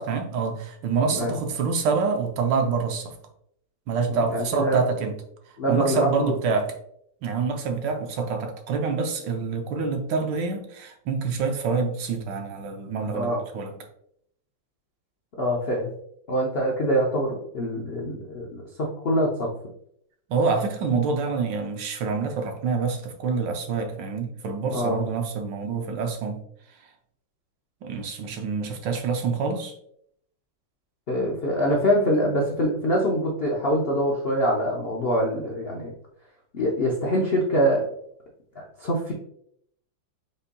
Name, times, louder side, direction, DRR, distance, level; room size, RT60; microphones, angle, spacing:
voice 1, 0.0-3.1 3.9-5.1 5.7-6.7 7.2-13.7 20.3-26.4 27.8-29.7, right 5 dB, 75° right, 4 dB, 1.3 m, -26 dB
voice 2, 4.1-4.8 5.6-6.3 13.1-13.4 15.4-15.9 16.3-19.5 24.7-25.0 31.1-35.9 36.5-37.9 38.5-39.1, equal, 70° left, -2 dB, 0.5 m, -24 dB
5.3 x 4.1 x 2.2 m, 0.69 s
omnidirectional pair, 2.1 m